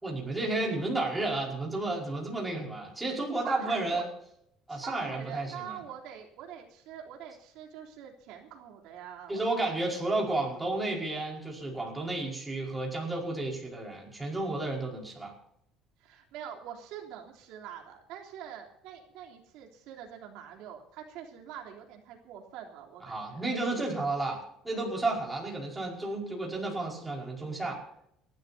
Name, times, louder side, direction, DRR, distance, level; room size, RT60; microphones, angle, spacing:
voice 1, 0.0-4.1 4.7-5.7 9.3-15.3 23.0-27.8, right 2 dB, 10° right, -2 dB, 5.2 m, -32 dB
voice 2, 3.4-4.0 4.7-9.8 10.1-10.4 16.0-23.4, right 9 dB, 75° right, 0 dB, 3.5 m, -45 dB
29.5 x 13.0 x 2.8 m, 0.74 s
cardioid pair, 155°, 0 cm